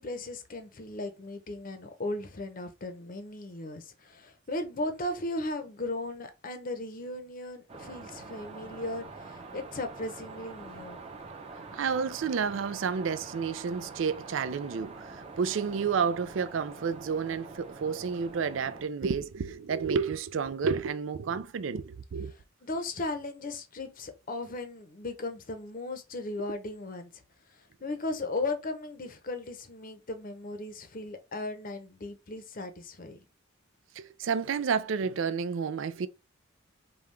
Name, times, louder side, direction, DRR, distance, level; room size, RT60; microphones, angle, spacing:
voice 1, 0.0-11.0 22.6-27.2 27.5-33.2, left 2 dB, 45° left, 0.7 m, -37 dB
sound 1, 7.7-18.8, right 3 dB, 30° right, 0.8 m, -45 dB
voice 2, 11.7-22.3 33.9-36.1, right 6 dB, 70° right, 0.4 m, -30 dB
5.4 x 2.3 x 3.2 m
head